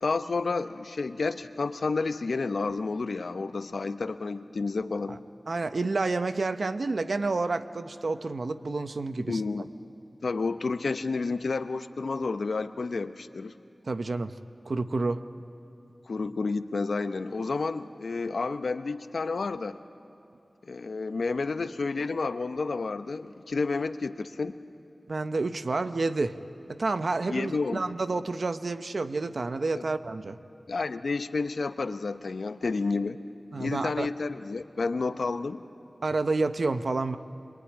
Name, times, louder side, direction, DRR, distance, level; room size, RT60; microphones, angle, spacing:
voice 1, 0.0-5.2 9.3-9.7 10.2-13.5 16.1-19.8 20.7-24.6 27.3-27.8 29.8-29.9 30.7-33.2 33.6-35.6, left 4 dB, 85° left, 10 dB, 0.8 m, -30 dB
voice 2, 5.5-9.4 13.9-14.3 14.7-15.2 25.1-26.4 26.8-30.4 33.5-34.1 36.0-37.2, right 3 dB, 70° right, 10 dB, 0.9 m, -29 dB
25.0 x 23.0 x 9.9 m, 2.8 s
wide cardioid pair, 75°, 0 cm